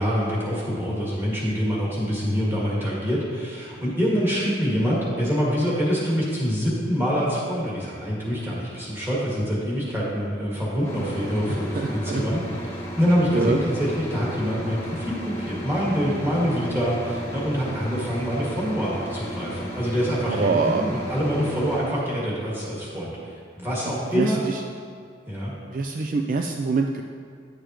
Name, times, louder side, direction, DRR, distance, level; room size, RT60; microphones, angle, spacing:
voice 1, 0.0-23.1 23.6-24.4 25.3-25.5, equal, 15° right, -7 dB, 1.9 m, -25 dB
sound 1, 10.8-21.8, equal, 15° left, 1.2 m, -34 dB
voice 2, 11.5-12.2 13.3-13.6 20.3-20.9 23.9-24.6 25.7-27.0, right 4 dB, 50° right, 3 dB, 0.3 m, -25 dB
10.5 x 6.8 x 3.0 m, 2.2 s
head